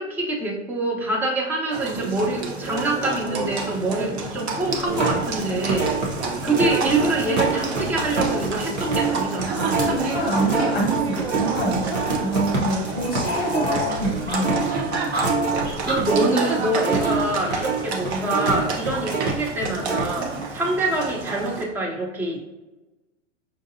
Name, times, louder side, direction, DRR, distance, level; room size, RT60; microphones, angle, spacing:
voice 1, 0.0-5.9 6.4-9.9 15.9-22.6, right 2 dB, 5° right, -1 dB, 0.3 m, -25 dB
Livestock farm animals working animals, 1.7-21.6, right 4 dB, 60° right, 0.8 m, -29 dB
sound 1, 4.7-16.3 16.6-19.3 19.6-20.0, right 3 dB, 80° right, 1.2 m, -26 dB
voice 2, 9.8-15.1, right 1 dB, 25° left, 0 dB, 0.7 m, -26 dB
sound 2, 13.2-17.7, right 1 dB, 30° right, 1.4 m, -32 dB
5.5 x 2.5 x 2.6 m, 1.1 s
figure-of-eight pair, 95°, 36 cm